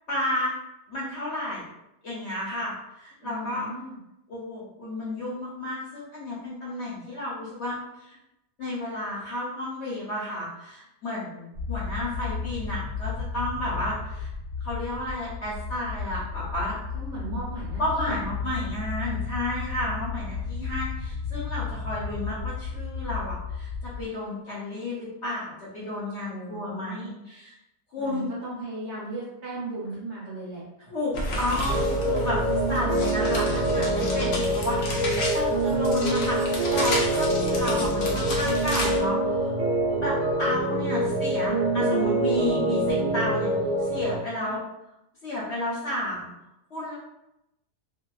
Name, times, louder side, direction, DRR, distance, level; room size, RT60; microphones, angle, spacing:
voice 1, 0.1-0.5 0.9-1.7 2.0-3.7 4.3-8.2 8.6-14.3 14.6-16.8 17.8-27.5 27.9-28.3 30.9-32.4 32.7-39.6 40.0-43.5 43.8-44.6 45.2-46.3 46.7-46.9, left 1 dB, 55° left, -7 dB, 0.9 m, -32 dB
voice 2, 3.2-4.0 16.9-18.1 26.3-27.2 28.0-30.6 34.7-35.3 44.4-44.6, right 2 dB, 60° right, -7 dB, 0.8 m, -37 dB
sound 1, 11.5-24.1, left 5 dB, 30° right, 0.9 m, -33 dB
sound 2, 31.1-39.0, left 1 dB, 75° left, 0.5 m, -31 dB
sound 3, 31.7-44.2, right 1 dB, 85° right, 0.5 m, -25 dB
2.7 x 2.1 x 2.3 m, 0.87 s
omnidirectional pair, 1.7 m